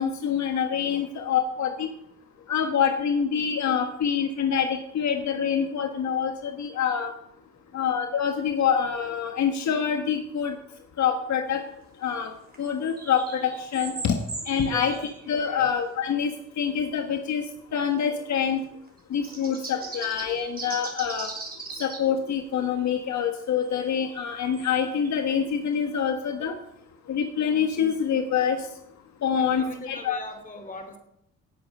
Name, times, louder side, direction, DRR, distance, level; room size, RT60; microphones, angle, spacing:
voice 1, 0.0-1.9 2.5-4.7 4.9-7.1 7.7-10.5 11.0-11.6 12.0-12.3 12.6-14.2 14.5-14.9 15.3-16.3 16.6-17.4 17.7-18.6 19.1-21.3 21.8-26.5 27.1-28.6 29.2-30.2, left 7 dB, 65° left, 5 dB, 1.4 m, -26 dB
sound 1, 12.5-15.6 16.8-16.9 18.9-22.0 23.7-25.7, right 3 dB, 30° right, 4.4 m, -39 dB
voice 2, 14.7-15.0 15.5-15.7 29.3-31.0, left 2 dB, 25° left, 6 dB, 3.1 m, -41 dB
18.0 x 8.0 x 5.4 m, 0.78 s
cardioid pair, 90°, 30 cm